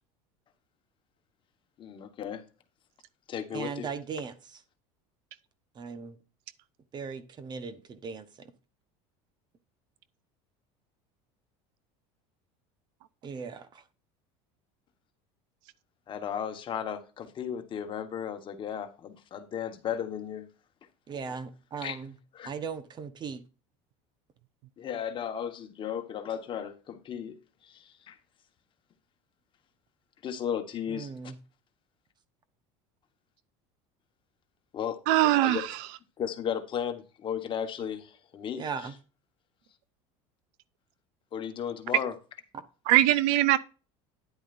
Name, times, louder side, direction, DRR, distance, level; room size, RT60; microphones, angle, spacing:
voice 1, 1.8-2.4 3.3-3.9 16.1-20.5 21.8-22.0 22.3-22.5 24.8-27.3 27.6-28.2 30.2-31.1 34.7-35.0 35.4-35.6 36.2-38.9 41.3-42.1, left 8 dB, 35° left, 1.4 m, -35 dB
voice 2, 3.5-4.6 5.7-6.2 6.9-8.5 13.2-13.8 21.1-22.2 22.4-23.4 30.9-31.4 38.6-39.0 42.5-42.6, right 5 dB, 30° right, 1.1 m, -38 dB
voice 3, 35.1-35.7 42.9-43.6, right 15 dB, 70° right, 0.6 m, -21 dB
10.0 x 8.8 x 2.6 m
supercardioid pair, 130°, 14 cm